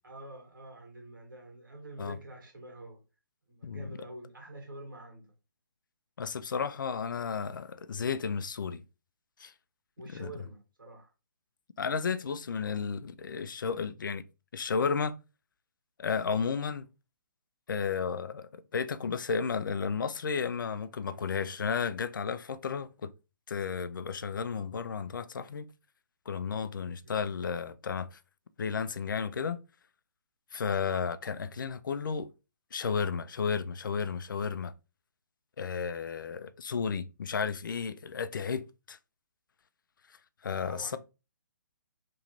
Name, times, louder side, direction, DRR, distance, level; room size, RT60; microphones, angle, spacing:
voice 1, 0.0-3.0 3.5-5.3 7.1-7.4 10.0-11.1 27.0-27.3 36.7-36.8 40.7-41.0, right 1 dB, 90° right, 1.5 m, -47 dB
voice 2, 3.6-4.0 6.2-8.8 9.4-9.5 10.1-10.3 11.8-14.2 14.5-15.2 16.0-16.9 17.7-23.1 23.5-25.7 26.3-28.2 28.6-29.6 30.5-32.3 32.7-34.7 35.6-39.0 40.4-41.0, left 6 dB, 80° left, 0.4 m, -33 dB
3.0 x 2.4 x 2.9 m
hypercardioid pair, 150°, 11 cm